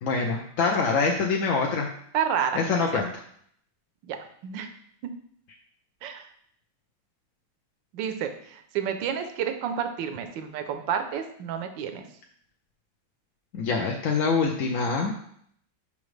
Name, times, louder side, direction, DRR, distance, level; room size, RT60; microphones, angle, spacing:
voice 1, 0.0-1.9 2.5-3.1 13.5-15.1, left 4 dB, 60° left, 0 dB, 0.9 m, -25 dB
voice 2, 2.1-2.6 2.9-3.0 4.0-4.2 4.4-4.7 6.0-6.3 7.9-12.1, right 8 dB, 85° right, 7 dB, 1.4 m, -30 dB
7.1 x 5.0 x 3.2 m, 0.65 s
omnidirectional pair, 2.0 m